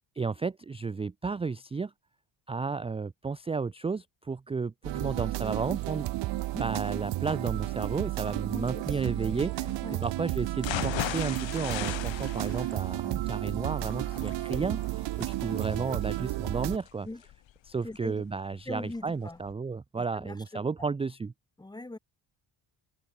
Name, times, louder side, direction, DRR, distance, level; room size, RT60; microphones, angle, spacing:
voice 1, 0.2-1.9 2.5-6.1 6.5-9.7 10.0-17.1 17.7-21.3, right 4 dB, 15° right, 0.4 m, -33 dB
sound 1, 4.8-16.8, right 17 dB, 65° right, 0.7 m, -32 dB
voice 2, 8.5-9.2 9.5-10.0 17.0-17.2 17.8-18.2 18.7-19.4 20.0-20.9 21.6-22.0, left 2 dB, 10° left, 2.8 m, -42 dB
sound 2, 10.6-18.5 18.9-19.0 19.4-19.5, left 13 dB, 65° left, 4.2 m, -38 dB
cardioid pair, 180°, 47 cm